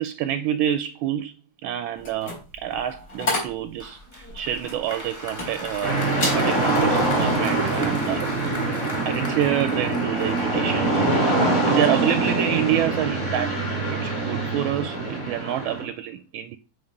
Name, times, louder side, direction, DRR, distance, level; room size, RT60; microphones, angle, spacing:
voice 1, 0.0-1.3 1.6-6.0 6.3-8.3 9.0-11.0 11.6-13.6 13.9-16.6, right 11 dB, 75° right, 1.3 m, -27 dB
sound 1, 2.0-5.8 6.1-6.5 6.9-7.2, left 2 dB, 50° left, 4.4 m, -30 dB
Applause, 3.8-10.9, equal, 10° left, 0.9 m, -36 dB
sound 2, 5.8-15.8, right 2 dB, 35° left, 3.2 m, -24 dB
7.9 x 3.7 x 5.2 m
omnidirectional pair, 2.4 m